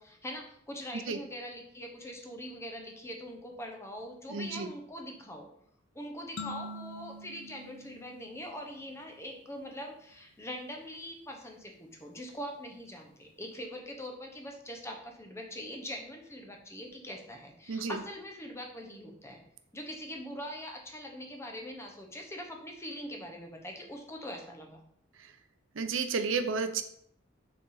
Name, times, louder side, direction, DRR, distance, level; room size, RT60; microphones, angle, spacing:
voice 1, 0.0-5.5 5.9-19.4 19.7-24.8, equal, 15° left, 2 dB, 0.9 m, -43 dB
voice 2, 4.3-4.7 17.7-18.0 25.8-26.8, right 5 dB, 85° right, 9 dB, 0.6 m, -31 dB
sound 1, 6.4-9.0, left 2 dB, 60° left, 0.6 m, -44 dB
6.5 x 3.8 x 3.9 m, 0.67 s
head